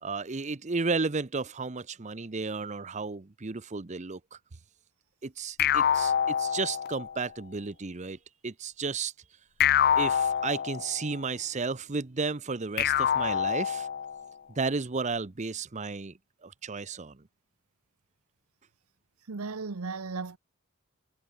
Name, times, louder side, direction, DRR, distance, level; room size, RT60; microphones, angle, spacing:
voice 1, 0.0-4.4 5.2-8.2 8.4-9.1 10.0-13.9 14.5-16.1 16.4-17.2, right 4 dB, 35° right, 0.7 m, -33 dB
sound 1, 5.6-7.2 9.6-11.2 12.8-14.3, left 9 dB, 45° left, 0.4 m, -26 dB
voice 2, 19.3-20.4, right 4 dB, 85° right, 0.9 m, -35 dB
head